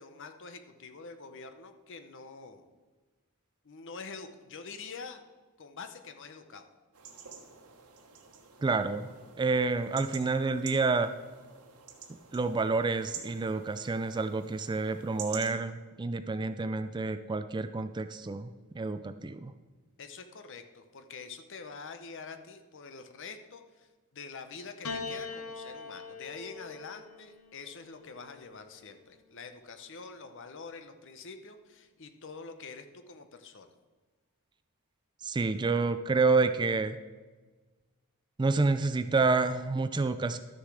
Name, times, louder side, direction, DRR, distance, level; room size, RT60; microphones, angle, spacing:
voice 1, 0.0-2.7 3.6-5.2 5.6-6.7 20.0-33.7, left 4 dB, 55° left, 8 dB, 0.8 m, -46 dB
sound 1, 6.9-15.5, right 7 dB, 90° right, 1.3 m, -48 dB
voice 2, 8.6-9.1 9.4-11.1 12.3-18.5 18.7-19.5 35.2-37.0 38.4-40.4, right 3 dB, 20° right, 10 dB, 0.3 m, -28 dB
Piano, 24.8-29.3 30.4-31.1, left 4 dB, 80° left, 1.0 m, -43 dB
12.5 x 6.8 x 4.8 m, 1.3 s
head